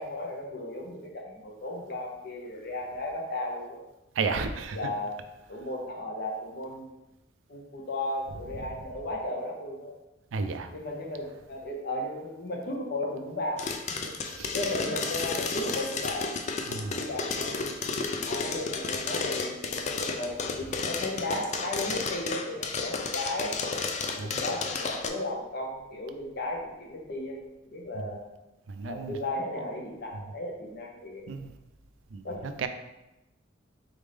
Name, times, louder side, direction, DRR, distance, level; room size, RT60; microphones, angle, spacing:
voice 1, 0.0-3.8 4.7-5.1 5.5-6.9 7.5-9.9 10.7-13.7 14.0-14.1 14.5-16.3 16.9-17.6 18.2-23.6 24.1-28.2 28.8-31.2 32.2-32.4, left 1 dB, 55° left, 0 dB, 0.8 m, -35 dB
voice 2, 4.1-4.8 10.3-10.7 14.2-14.6 16.7-17.0 24.1-24.4 27.9-28.1 28.7-29.2 31.3-31.5 32.1-32.7, right 4 dB, 75° right, 8 dB, 0.4 m, -33 dB
sound 1, 13.6-25.1, left 4 dB, 35° left, 0.3 m, -32 dB
3.9 x 3.5 x 3.3 m, 0.97 s
head